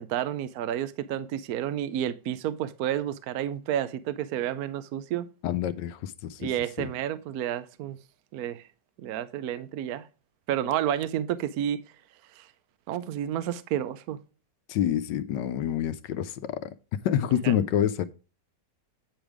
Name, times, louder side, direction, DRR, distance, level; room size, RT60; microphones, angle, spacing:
voice 1, 0.0-5.3 6.4-8.0 8.3-8.6 9.0-10.1 10.5-11.8 12.3-12.5 12.9-14.2 17.4-17.5, right 11 dB, 70° right, 0.9 m, -30 dB
voice 2, 5.4-6.5 6.8-6.9 14.7-16.7 17.0-18.0, left 10 dB, 80° left, 1.2 m, -27 dB
8.9 x 5.2 x 4.8 m
omnidirectional pair, 1.9 m